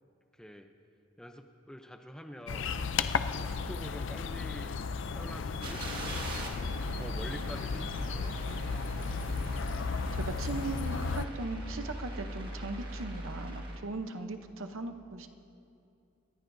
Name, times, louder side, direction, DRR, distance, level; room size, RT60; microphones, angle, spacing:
voice 1, 0.3-0.7 1.2-2.7 3.3-4.7 5.1-5.8 7.0-8.7 11.1-11.2, equal, 5° left, 5 dB, 0.6 m, -47 dB
sound 1, 2.5-11.3, left 5 dB, 60° left, 0.5 m, -34 dB
sound 2, 5.6-13.8, right 1 dB, 45° right, 1.9 m, -40 dB
voice 2, 9.2-9.7 10.1-15.3, right 2 dB, 75° right, 7 dB, 0.8 m, -39 dB
27.0 x 15.0 x 2.7 m, 2.6 s
head